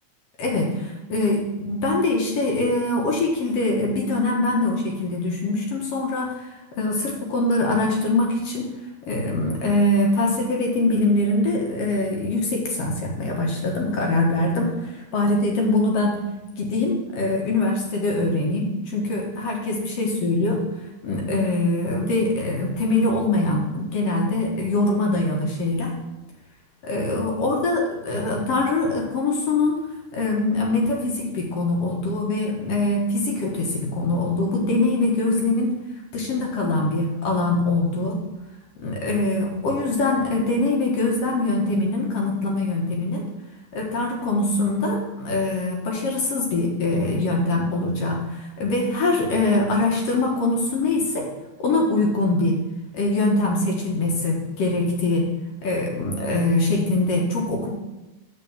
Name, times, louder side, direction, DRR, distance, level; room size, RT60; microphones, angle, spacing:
voice 1, 0.4-6.3 6.8-8.7 9.1-14.8 15.1-16.2 16.6-20.6 21.0-25.9 26.8-29.8 30.1-35.8 36.1-38.2 38.8-43.3 43.7-51.3 51.6-52.6 52.9-55.3 55.6-57.7, left 2 dB, 60° left, -1 dB, 2.1 m, -23 dB
8.1 x 4.6 x 7.2 m, 1.0 s
omnidirectional pair, 3.6 m